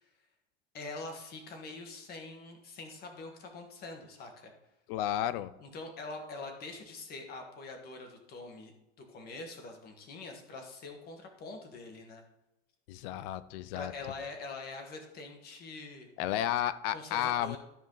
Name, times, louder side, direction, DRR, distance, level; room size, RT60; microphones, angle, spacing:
voice 1, 0.7-4.5 5.6-8.7 9.1-12.2 13.7-16.1 16.9-17.6, left 3 dB, 30° left, 4 dB, 1.4 m, -44 dB
voice 2, 4.9-5.5 12.9-13.9 16.2-17.6, left 12 dB, 60° left, 16 dB, 0.5 m, -32 dB
13.0 x 4.7 x 3.8 m, 0.90 s
cardioid pair, 175°, 31 cm